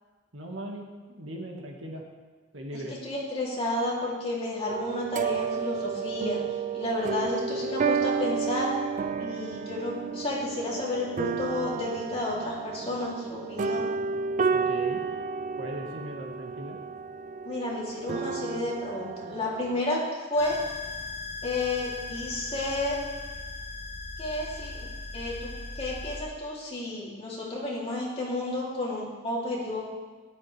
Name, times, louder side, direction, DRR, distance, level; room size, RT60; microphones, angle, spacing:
voice 1, 0.3-2.0 2.5-3.0 14.5-15.0 15.6-16.8, right 1 dB, 75° right, 1 dB, 1.7 m, -39 dB
voice 2, 2.7-6.4 6.7-8.7 9.2-13.9 17.4-20.6 21.4-23.0 24.2-24.8 25.1-25.5 25.7-29.9, left 2 dB, 30° left, -6 dB, 3.0 m, -31 dB
sound 1, 4.7-19.8, right 5 dB, 40° right, 0.3 m, -31 dB
sound 2, 20.4-26.2, left 3 dB, 15° left, 1.7 m, -38 dB
13.5 x 11.0 x 3.4 m, 1.4 s
head